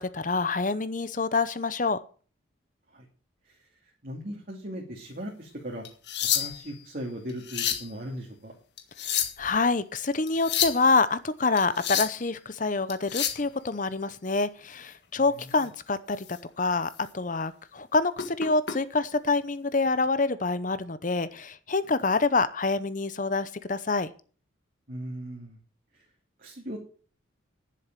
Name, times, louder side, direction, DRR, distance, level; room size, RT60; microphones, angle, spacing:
voice 1, 0.0-2.0 9.4-24.1, left 3 dB, 40° left, 14 dB, 0.7 m, -26 dB
voice 2, 4.0-5.8 6.3-8.5 24.9-25.6 26.4-26.8, equal, 45° right, -2 dB, 2.6 m, -38 dB
sound 1, 5.9-6.8 7.3-7.9 8.8-9.5 10.3-10.8 11.6-12.2 12.9-13.4 15.5-15.7 16.2-16.4 16.9-17.0 18.2-18.8 19.9-20.1, left 9 dB, 55° left, 1.7 m, -29 dB
10.5 x 7.6 x 7.5 m, 0.41 s
head